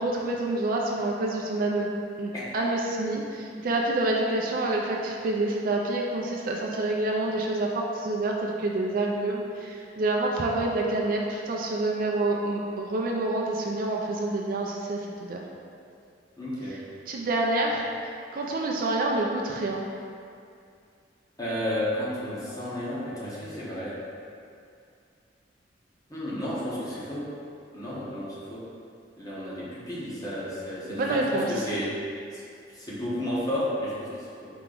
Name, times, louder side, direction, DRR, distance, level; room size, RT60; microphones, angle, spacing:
voice 1, 0.0-1.9 2.2-15.4 17.1-17.8 18.3-19.8 30.9-31.7, right 2 dB, 50° right, -1 dB, 0.4 m, -27 dB
voice 2, 16.4-16.8 21.4-23.9 26.1-27.2 27.7-28.6 29.2-31.9 32.3-32.4 32.7-34.1 34.4-34.5, left 1 dB, 20° left, -8 dB, 1.0 m, -32 dB
4.6 x 3.0 x 3.8 m, 2.4 s
head